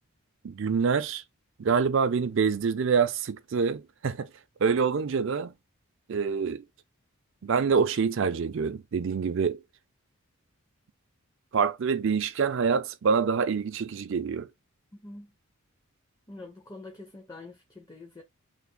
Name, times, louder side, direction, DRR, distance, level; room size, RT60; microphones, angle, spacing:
voice 1, 0.4-1.2 1.6-4.3 4.6-5.5 6.1-6.6 7.4-9.6 11.5-14.5, right 5 dB, 55° right, 0.4 m, -26 dB
voice 2, 14.9-15.3 16.3-18.2, left 2 dB, 15° left, 0.5 m, -45 dB
3.3 x 2.0 x 3.7 m
head